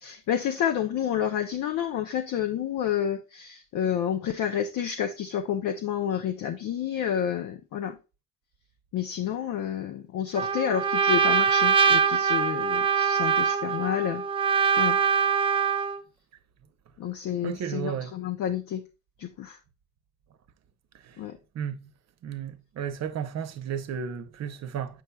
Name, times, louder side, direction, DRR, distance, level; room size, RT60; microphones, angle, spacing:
voice 1, 0.0-8.0 8.9-14.3 14.8-15.0 17.0-18.8 19.2-19.6 21.2-21.4, left 9 dB, 75° left, 0.6 m, -29 dB
Trumpet, 10.3-16.0, right 7 dB, 20° right, 0.5 m, -23 dB
voice 2, 17.4-18.1 21.0-21.2 21.5-21.9 22.2-25.0, right 8 dB, 60° right, 0.8 m, -33 dB
7.6 x 5.5 x 2.2 m
cardioid pair, 90°, 30 cm